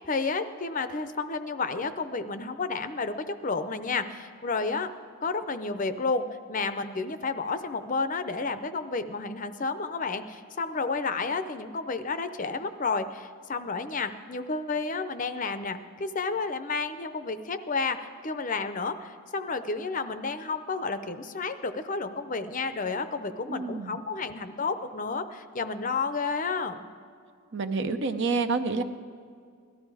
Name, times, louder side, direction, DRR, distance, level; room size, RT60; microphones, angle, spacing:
voice 1, 0.0-4.9 5.2-26.9, left 4 dB, 35° left, 10 dB, 0.6 m, -31 dB
voice 2, 23.5-24.0 27.5-28.8, right 4 dB, 55° right, 9 dB, 0.7 m, -28 dB
17.5 x 12.5 x 4.8 m, 2.2 s
head